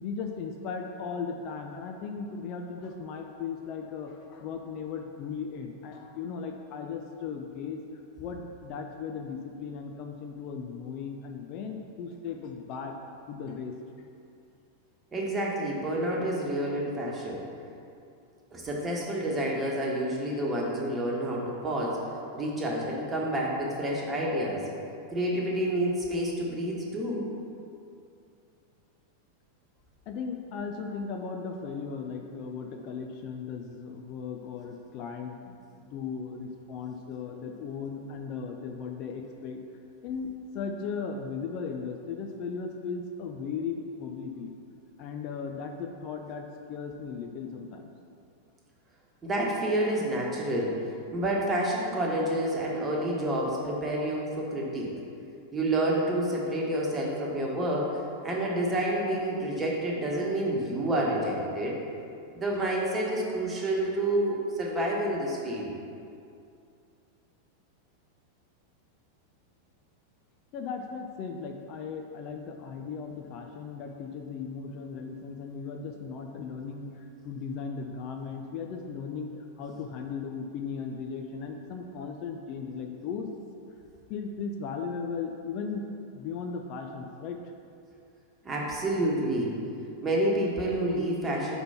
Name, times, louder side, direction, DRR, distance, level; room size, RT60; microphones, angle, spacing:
voice 1, 0.0-7.8 8.2-13.0 13.3-13.7 30.1-39.6 40.0-44.5 45.0-47.9 70.5-83.3 84.1-85.9 86.1-87.4, left 5 dB, 40° left, 4 dB, 0.4 m, -37 dB
voice 2, 15.1-17.4 18.5-22.0 22.3-24.7 25.1-27.3 49.2-50.8 51.1-54.9 55.5-61.8 62.3-65.7 88.4-89.6 90.0-91.6, right 1 dB, 20° right, -3 dB, 1.3 m, -29 dB
5.1 x 4.4 x 5.6 m, 2.5 s
figure-of-eight pair, 90°, 0 cm